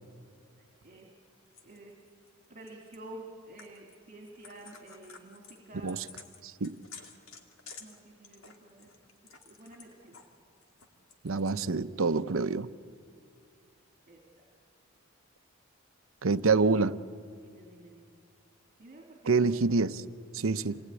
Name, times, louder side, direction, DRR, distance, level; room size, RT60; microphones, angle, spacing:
voice 1, 0.6-1.1 1.6-1.9 2.5-6.0 7.8-8.9 9.2-10.2 14.1-14.4 17.4-18.2 18.8-19.5 20.4-20.8, right 1 dB, 40° right, 1 dB, 2.9 m, -50 dB
sound 1, 1.5-3.0 3.6-4.0 4.2-10.3 10.6-11.6, left 5 dB, 70° left, 2.5 m, -51 dB
voice 2, 6.4-6.8 11.2-12.7 16.2-17.0 19.2-20.0 20.3-20.8, right 4 dB, 70° right, 13 dB, 0.7 m, -27 dB
28.0 x 19.5 x 9.7 m, 2.4 s
head